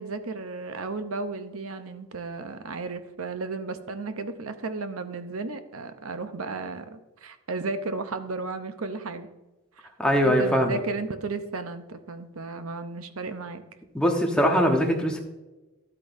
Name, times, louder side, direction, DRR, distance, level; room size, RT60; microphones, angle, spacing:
voice 1, 0.0-9.3 9.8-9.9 10.2-13.6, right 3 dB, 70° right, 9 dB, 0.8 m, -34 dB
voice 2, 10.0-10.8 13.9-15.2, equal, 5° left, 1 dB, 1.1 m, -22 dB
12.0 x 8.5 x 2.7 m, 1.1 s
head